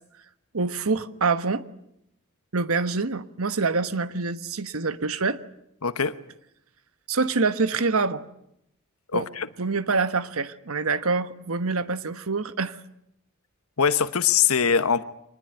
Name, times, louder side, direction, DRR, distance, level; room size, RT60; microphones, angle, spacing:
voice 1, 0.5-1.6 2.5-5.4 7.1-8.2 9.1-9.3 9.6-12.8, right 4 dB, 75° right, 1.2 m, -26 dB
voice 2, 5.8-6.1 9.1-9.5 13.8-15.0, left 7 dB, 85° left, 1.2 m, -22 dB
25.5 x 20.0 x 9.1 m
head